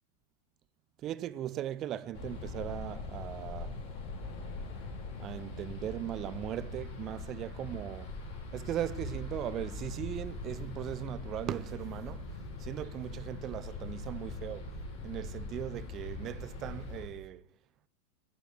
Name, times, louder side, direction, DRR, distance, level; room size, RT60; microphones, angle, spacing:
voice 1, 1.0-3.8 5.2-8.1 8.5-12.3 12.6-14.7 15.0-17.4, right 11 dB, 30° right, 0.6 m, -38 dB
sound 1, 2.1-17.1, left 2 dB, 55° left, 3.7 m, -41 dB
11.0 x 10.0 x 7.9 m
figure-of-eight pair, 90°, 0 cm